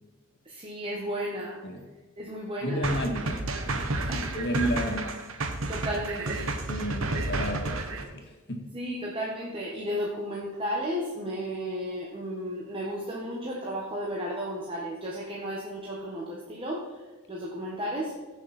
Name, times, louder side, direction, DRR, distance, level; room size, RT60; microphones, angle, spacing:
voice 1, 0.4-1.6 2.2-2.8 4.1-4.6 5.7-6.6 8.7-17.0 17.3-18.1, equal, 25° right, -4 dB, 1.4 m, -34 dB
voice 2, 2.6-3.4 3.7-5.2 6.7-8.7, equal, 50° left, 2 dB, 1.9 m, -32 dB
sound 1, 2.8-8.0, right 2 dB, 65° right, 1.2 m, -31 dB
16.0 x 6.2 x 4.3 m, 1.3 s
head